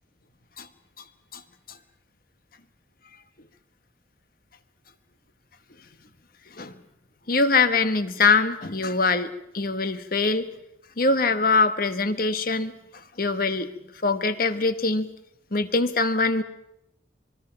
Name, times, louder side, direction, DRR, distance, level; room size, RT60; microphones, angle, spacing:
voice 1, 7.3-10.5 11.0-13.7 14.0-15.1 15.5-16.4, left 3 dB, 50° left, 10 dB, 1.2 m, -23 dB
25.5 x 22.0 x 5.8 m, 0.81 s
head